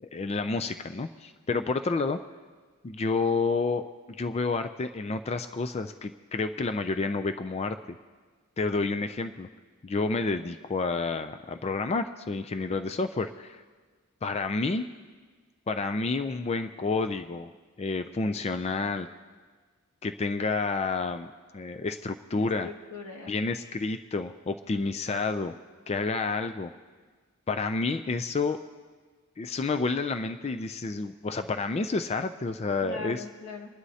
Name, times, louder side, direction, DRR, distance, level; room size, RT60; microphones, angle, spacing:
voice 1, 0.0-2.2 2.8-3.8 4.2-7.8 8.6-9.5 9.8-13.6 14.2-14.8 15.7-17.5 17.8-19.1 20.0-21.3 21.5-22.7 23.3-25.5 25.9-26.7 27.5-28.6 29.4-33.2, left 3 dB, 30° left, 8 dB, 0.4 m, -29 dB
voice 2, 22.3-23.3 32.8-33.7, left 3 dB, 85° left, 0 dB, 1.9 m, -40 dB
28.0 x 11.5 x 2.8 m, 1.5 s
head